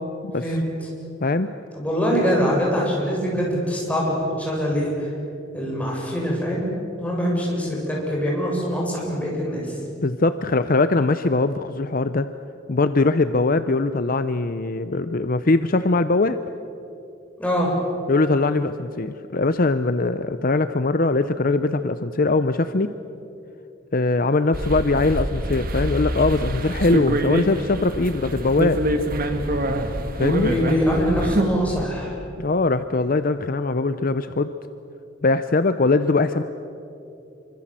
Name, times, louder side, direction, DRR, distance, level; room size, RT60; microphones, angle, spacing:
voice 1, 1.8-5.1 5.5-6.7 7.0-9.8 17.4-17.7 30.4-32.1, equal, 5° left, -3 dB, 7.3 m, -23 dB
voice 2, 10.0-12.3 12.7-16.4 18.1-22.9 23.9-28.8 30.2-30.5 32.4-34.5 35.2-36.4, left 3 dB, 45° left, 11 dB, 0.7 m, -21 dB
sound 1, 24.5-31.9, right 1 dB, 50° right, 2.0 m, -25 dB
26.5 x 25.0 x 7.6 m, 2.8 s
head